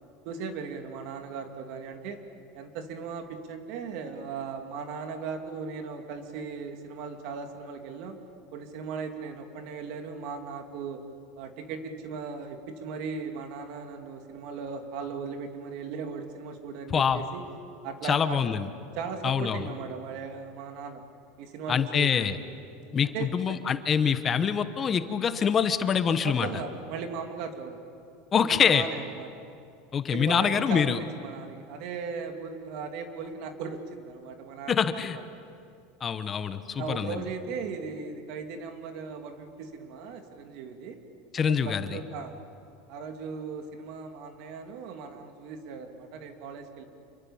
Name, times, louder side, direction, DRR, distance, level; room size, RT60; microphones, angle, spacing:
voice 1, 0.2-2.2 2.5-8.1 8.5-11.0 11.4-17.4 17.8-18.4 18.9-21.0 21.4-22.3 23.0-23.6 26.2-27.8 28.3-29.3 30.1-35.2 36.8-41.0 41.4-42.4 42.9-46.8, right 5 dB, 60° right, 5 dB, 2.8 m, -38 dB
voice 2, 16.9-17.2 18.0-18.7 19.2-19.6 21.7-22.4 22.9-26.5 28.3-28.8 29.9-31.0 34.7-35.2 36.0-37.2 41.3-42.0, left 7 dB, 25° left, 10 dB, 1.1 m, -25 dB
28.0 x 23.5 x 7.3 m, 2.6 s
supercardioid pair, 130°, 0 cm